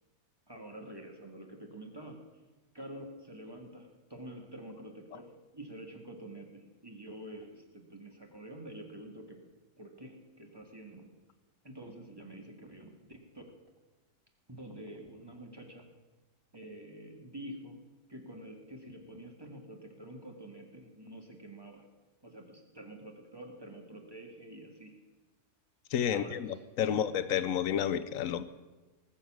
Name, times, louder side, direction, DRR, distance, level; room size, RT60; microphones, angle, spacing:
voice 1, 0.5-2.2 2.7-9.4 9.8-11.1 11.6-13.5 14.5-15.8 16.5-17.8 18.1-21.8 22.2-24.9 26.1-26.6 26.9-27.0, right 1 dB, 15° right, 2 dB, 1.7 m, -47 dB
voice 2, 25.9-28.4, left 9 dB, 65° left, 13 dB, 1.0 m, -30 dB
19.5 x 7.2 x 6.1 m, 1.2 s
omnidirectional pair, 1.7 m